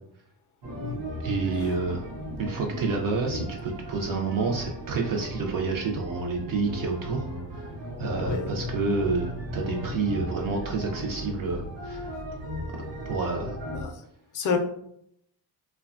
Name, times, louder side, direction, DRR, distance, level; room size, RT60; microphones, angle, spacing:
sound 1, 0.6-13.9, equal, 80° right, 0.8 m, -37 dB
voice 1, 1.2-2.0 2.4-7.2 8.0-12.1 13.1-13.6, right 4 dB, 50° right, 1 dB, 0.5 m, -28 dB
voice 2, 13.6-14.0 14.3-14.6, left 5 dB, 45° left, 5 dB, 0.4 m, -29 dB
3.2 x 2.2 x 2.4 m, 0.71 s
cardioid pair, 165°, 43 cm